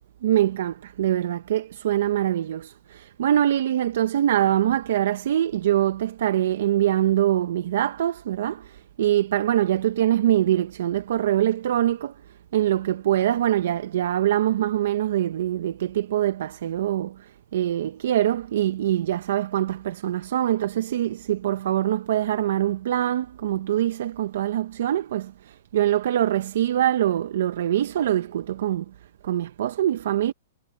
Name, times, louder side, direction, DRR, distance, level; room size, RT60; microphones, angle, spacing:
voice 1, 0.2-12.1 12.5-28.8 29.2-30.3, right 12 dB, 65° right, 0.8 m, -24 dB
hypercardioid pair, 155°, 0 cm